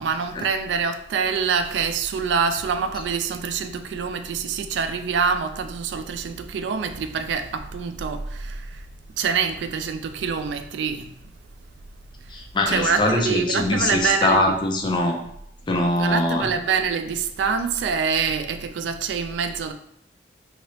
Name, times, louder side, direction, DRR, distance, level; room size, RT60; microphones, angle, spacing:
voice 1, 0.0-8.8 9.2-11.1 12.7-14.4 16.0-19.7, right 6 dB, 85° right, 0.3 m, -25 dB
voice 2, 12.3-15.2 15.7-16.5, left 1 dB, 25° left, 0.4 m, -22 dB
2.9 x 2.8 x 3.0 m
head